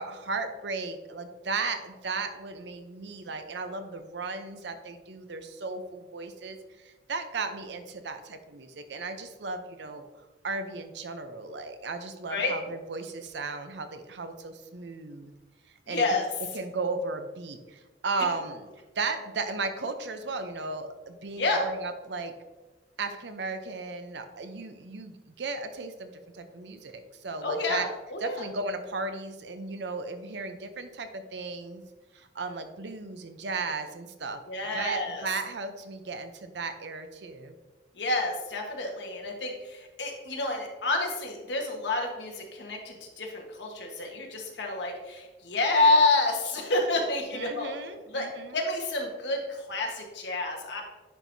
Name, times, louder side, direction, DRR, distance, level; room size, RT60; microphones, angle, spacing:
voice 1, 0.0-15.3 15.9-16.0 16.5-18.6 18.9-22.3 23.0-27.9 28.2-31.8 32.1-34.4 34.7-37.6 47.3-48.6, right 3 dB, 70° right, 8 dB, 0.6 m, -35 dB
voice 2, 15.9-16.2 21.4-21.6 27.4-28.4 34.5-35.2 37.9-47.7 48.1-50.8, left 2 dB, 70° left, 1 dB, 1.3 m, -28 dB
9.9 x 4.6 x 2.7 m, 1.2 s
head